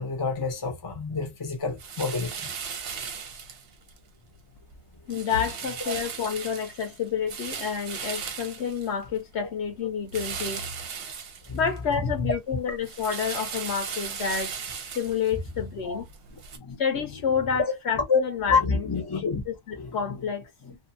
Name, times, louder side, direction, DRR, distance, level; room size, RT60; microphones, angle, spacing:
voice 1, 0.0-2.5 5.9-6.0 11.5-11.6 12.2-12.4 15.8-16.0 16.5-17.1 18.1-18.2 18.7-19.4 19.7-20.2 20.6-20.8, left 4 dB, 25° left, 0.6 m, -29 dB
sound 1, 1.8-4.0 4.4-4.8 5.1-9.4 10.1-12.0 12.3-16.6, right 6 dB, 60° right, 0.8 m, -37 dB
voice 2, 5.1-10.7 11.5-14.5 14.9-16.1 16.8-18.9 19.5-20.4, left 6 dB, 65° left, 1.0 m, -28 dB
2.6 x 2.5 x 2.6 m
omnidirectional pair, 1.3 m